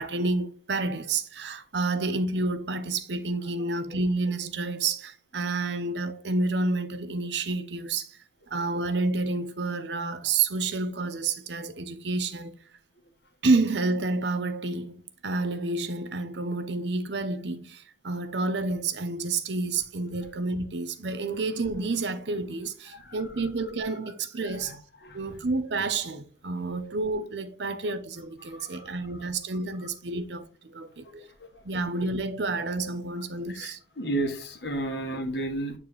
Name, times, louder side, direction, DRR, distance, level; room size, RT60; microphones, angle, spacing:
voice 1, 0.0-8.2 8.5-12.6 13.4-24.8 25.1-31.1 31.6-33.8, right 3 dB, 85° right, 0.8 m, -29 dB
voice 2, 24.4-24.7 25.0-25.2 28.5-29.3 30.1-30.2 31.0-31.2 31.5-31.6 33.5-35.7, right 2 dB, 75° left, 1.5 m, -33 dB
8.9 x 4.2 x 3.2 m
head